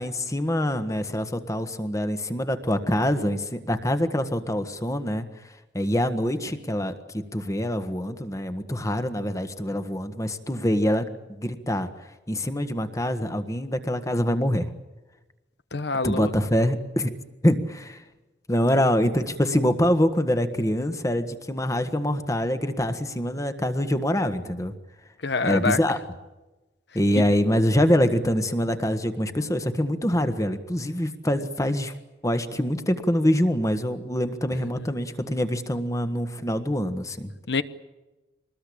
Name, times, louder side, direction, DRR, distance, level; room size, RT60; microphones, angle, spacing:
voice 1, 0.0-5.2 5.7-11.9 12.3-14.7 16.0-17.1 17.4-18.0 18.5-24.7 25.4-26.0 26.9-31.9 32.2-37.3, equal, 20° left, 1.5 m, -25 dB
voice 2, 15.7-16.3 25.2-25.8 37.5-37.6, left 4 dB, 65° left, 1.1 m, -25 dB
24.5 x 20.0 x 8.7 m
head